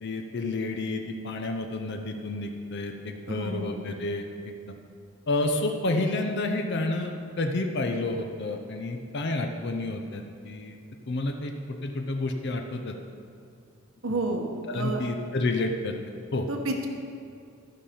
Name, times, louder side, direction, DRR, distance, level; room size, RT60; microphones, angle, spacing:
voice 1, 0.0-4.8 5.3-10.8 11.1-11.5 11.8-12.9 14.7-15.9 16.3-16.5, left 2 dB, 50° left, 4 dB, 0.6 m, -30 dB
voice 2, 3.3-3.9 14.0-15.1 16.5-16.9, right 2 dB, 65° right, 2 dB, 1.1 m, -30 dB
13.5 x 5.6 x 5.1 m, 2.4 s
head